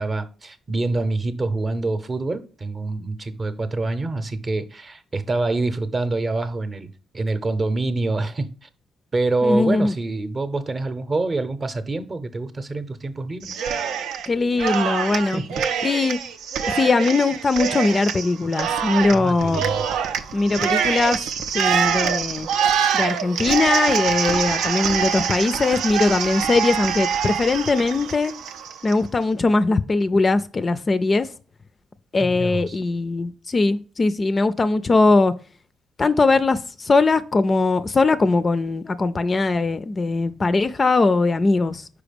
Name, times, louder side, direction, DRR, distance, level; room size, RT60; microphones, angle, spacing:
voice 1, 0.0-8.7 9.1-13.6 15.3-15.6 19.1-19.9 32.2-32.8, right 2 dB, 30° right, 0.7 m, -26 dB
voice 2, 9.4-9.9 14.3-15.4 15.8-16.2 16.7-19.7 20.3-21.2 21.5-22.5 22.9-28.3 28.8-31.3 32.1-35.3 36.0-41.9, left 3 dB, 30° left, 0.4 m, -20 dB
Cheering, 13.4-14.3 14.6-29.0, right 7 dB, 85° right, 0.5 m, -25 dB
4.9 x 4.6 x 5.1 m
cardioid pair, 90°, 0 cm